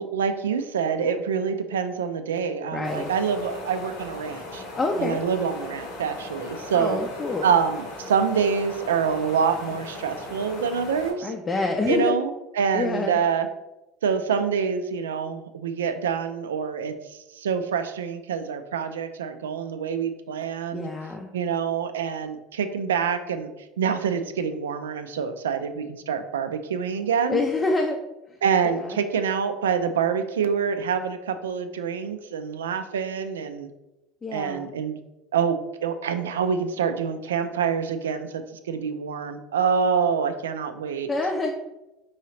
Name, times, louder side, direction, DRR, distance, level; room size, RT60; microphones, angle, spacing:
voice 1, 0.0-4.6 5.0-7.0 7.4-11.3 11.9-13.5 14.0-20.9 21.3-23.5 23.8-27.4 28.4-33.7 34.3-35.0 35.3-41.1, right 6 dB, 85° right, 9 dB, 0.3 m, -26 dB
voice 2, 2.7-3.1 4.8-5.2 6.7-7.5 11.2-12.2 12.7-13.2 20.7-21.3 27.3-28.0 28.7-29.0 34.2-34.7 41.1-41.5, left 3 dB, 25° left, 1 dB, 0.5 m, -26 dB
sound 1, 2.8-11.1, left 2 dB, 75° left, 1.1 m, -38 dB
4.6 x 2.8 x 3.1 m, 0.97 s
hypercardioid pair, 80°, 0 cm